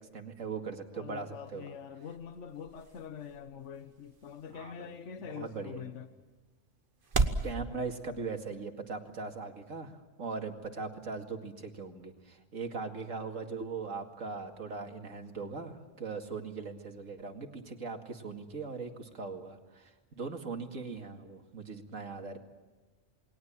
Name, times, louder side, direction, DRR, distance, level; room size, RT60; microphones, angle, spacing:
voice 1, 0.0-1.8 4.5-4.9 5.3-5.9 7.4-22.4, right 4 dB, 75° right, 2.6 m, -40 dB
voice 2, 0.9-6.1, left 7 dB, 65° left, 1.4 m, -44 dB
sound 1, 1.2-7.5, right 3 dB, 40° right, 1.5 m, -38 dB
29.0 x 20.5 x 7.4 m
omnidirectional pair, 1.4 m